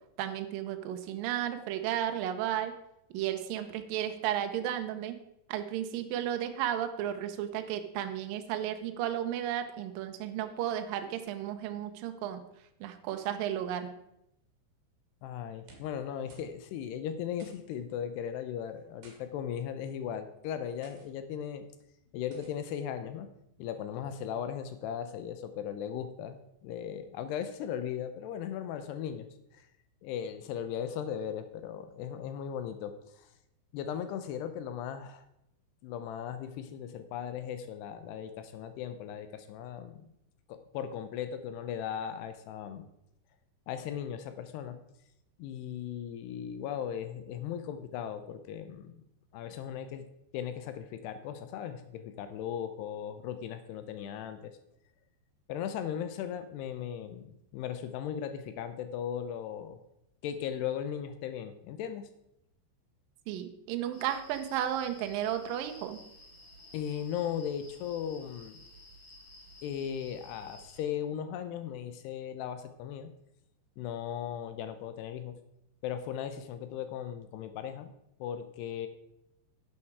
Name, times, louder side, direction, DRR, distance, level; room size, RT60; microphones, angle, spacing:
voice 1, 0.2-2.7 3.1-5.2 5.5-12.4 12.8-13.9 63.3-66.0, right 11 dB, 80° right, 7 dB, 2.0 m, -33 dB
voice 2, 15.2-21.7 22.1-23.3 23.6-29.3 29.5-29.7 30.0-33.3 33.7-35.3 35.8-40.1 40.5-42.9 43.7-44.8 45.4-49.0 49.3-50.1 50.3-54.5 55.5-59.8 60.2-62.1 66.7-68.6 69.6-73.1 73.8-75.4 75.8-77.9 78.2-78.9, left 9 dB, 80° left, 10 dB, 2.6 m, -37 dB
sound 1, 15.5-16.0 16.3-16.6 16.8-16.9 17.4-17.8 18.7-19.2 20.0-20.2 20.8-21.1 22.3-22.7, right 3 dB, 55° right, 3.8 m, -58 dB
sound 2, 63.9-70.8, left 1 dB, 35° left, 2.8 m, -53 dB
11.0 x 8.6 x 4.8 m, 0.81 s
omnidirectional pair, 5.3 m